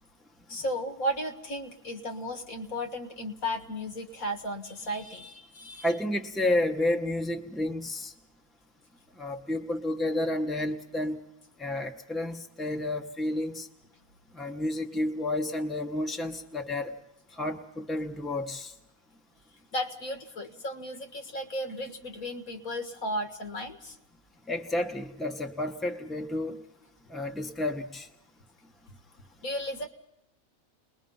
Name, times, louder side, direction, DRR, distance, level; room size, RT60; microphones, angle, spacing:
voice 1, 0.5-5.9 19.7-24.0 29.4-29.9, equal, 75° left, 5 dB, 2.2 m, -34 dB
voice 2, 5.8-8.1 9.2-11.2 11.6-13.7 14.3-16.9 17.4-18.7 24.5-26.6 27.1-28.1, left 1 dB, ahead, 4 dB, 1.2 m, -31 dB
30.0 x 21.0 x 5.6 m, 0.88 s
omnidirectional pair, 1.5 m